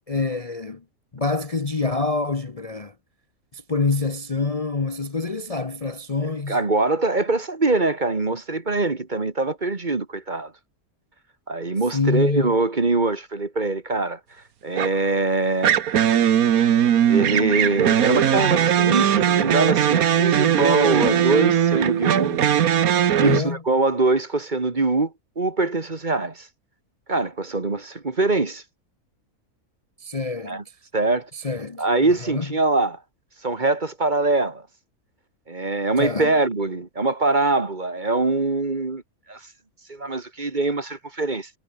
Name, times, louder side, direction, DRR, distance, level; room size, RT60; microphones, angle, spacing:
voice 1, 0.1-0.8 1.1-2.9 3.5-6.6 11.9-12.6 23.2-23.6 30.0-30.6 31.3-32.5 36.0-36.3, left 3 dB, 25° left, 1.0 m, -26 dB
voice 2, 6.2-10.5 11.5-14.2 14.6-15.8 17.1-22.4 23.2-26.5 27.1-28.6 30.5-30.6 30.9-31.3 31.8-33.0 33.4-34.7 35.5-39.0 39.3-39.4 39.9-41.5, right 3 dB, 30° right, 1.8 m, -23 dB
sound 1, 14.8-15.1 15.6-23.4, right 9 dB, 75° right, 1.5 m, -19 dB
omnidirectional pair, 1.6 m